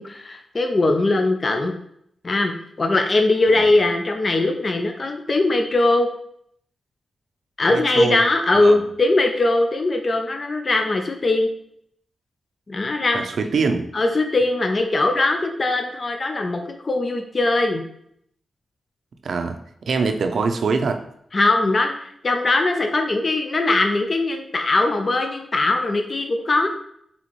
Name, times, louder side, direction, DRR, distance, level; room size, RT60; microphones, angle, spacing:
voice 1, 0.0-1.7 2.2-6.1 7.6-11.5 12.7-13.2 13.9-17.8 21.3-26.7, left 2 dB, 40° left, 5 dB, 0.5 m, -20 dB
voice 2, 7.7-8.2 8.5-8.8 13.1-13.8 19.2-19.6 19.9-21.0, right 4 dB, 70° right, 6 dB, 0.5 m, -23 dB
4.2 x 3.7 x 3.0 m, 0.70 s
cardioid pair, 85°, 0 cm